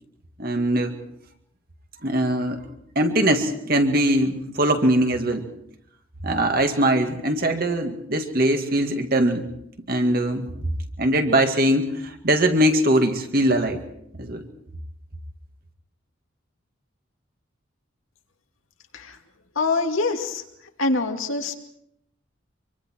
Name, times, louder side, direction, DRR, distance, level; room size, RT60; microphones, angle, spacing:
voice 1, 0.4-0.9 2.0-2.6 3.0-5.4 6.2-9.5 9.9-10.5 11.0-13.8 14.2-14.5, right 1 dB, 45° right, 5 dB, 2.0 m, -21 dB
voice 2, 19.6-20.4 20.8-21.5, left 3 dB, 80° left, 3 dB, 2.4 m, -24 dB
25.0 x 24.0 x 4.6 m, 0.73 s
head